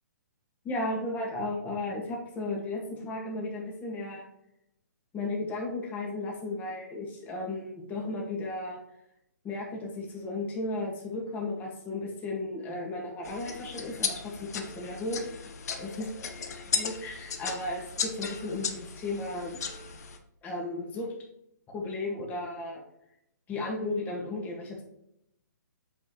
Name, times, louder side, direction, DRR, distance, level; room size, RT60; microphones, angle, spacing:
voice 1, 0.6-4.2 5.1-8.8 9.4-15.4 15.8-16.1 16.5-19.6 20.4-21.1 21.7-22.8 23.5-24.8, left 2 dB, 15° left, -1 dB, 1.8 m, -34 dB
sound 1, 13.2-20.2, left 6 dB, 60° left, 1.0 m, -36 dB
8.5 x 4.9 x 3.1 m, 0.80 s
hypercardioid pair, 145°, 10 cm